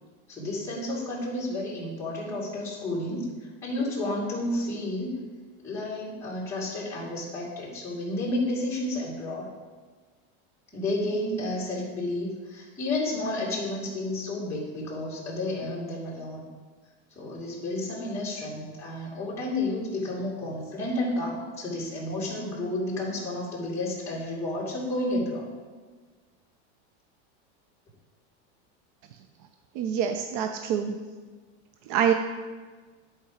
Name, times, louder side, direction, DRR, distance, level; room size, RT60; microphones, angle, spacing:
voice 1, 0.3-3.3 3.6-5.1 5.6-9.5 10.7-16.4 17.1-25.5, left 1 dB, 10° left, -7 dB, 2.3 m, -31 dB
voice 2, 29.7-31.0 31.9-32.1, right 8 dB, 50° right, 6 dB, 0.5 m, -25 dB
10.5 x 4.5 x 4.8 m, 1.4 s
supercardioid pair, 160°, 33 cm